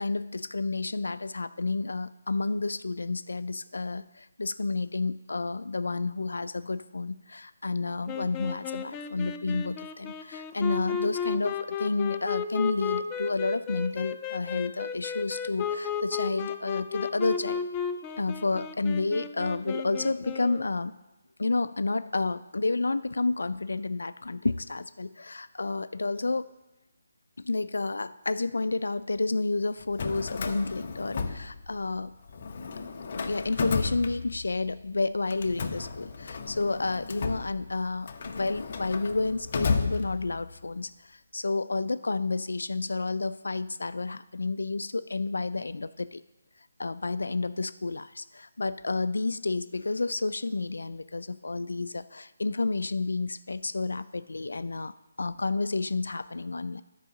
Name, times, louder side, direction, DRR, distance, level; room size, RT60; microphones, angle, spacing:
voice 1, 0.0-17.7 18.2-21.0 21.4-26.5 27.4-32.2 33.1-46.2 46.8-56.8, left 3 dB, 85° left, 14 dB, 0.4 m, -30 dB
sound 1, 8.1-20.7, left 7 dB, 15° left, 0.4 m, -34 dB
Drawer open or close, 29.8-32.0 32.3-34.7 35.3-40.6, left 4 dB, 40° left, 0.7 m, -33 dB
10.0 x 4.8 x 6.4 m, 1.0 s
hypercardioid pair, 165°, 0 cm